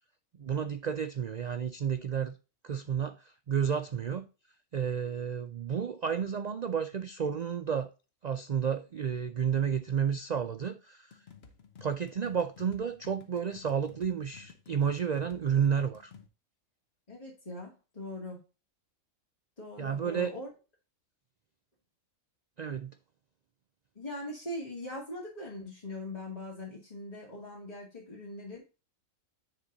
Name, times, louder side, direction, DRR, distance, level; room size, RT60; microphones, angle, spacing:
voice 1, 0.4-2.4 2.6-4.3 4.7-7.9 8.2-11.2 11.8-16.1 19.8-20.3 22.6-23.0, right 7 dB, 80° right, 0.3 m, -31 dB
sound 1, 11.1-16.3, left 7 dB, 50° left, 1.2 m, -54 dB
voice 2, 17.1-18.4 19.6-20.5 24.0-28.6, left 1 dB, 30° left, 2.3 m, -41 dB
9.9 x 4.0 x 3.9 m
omnidirectional pair, 1.4 m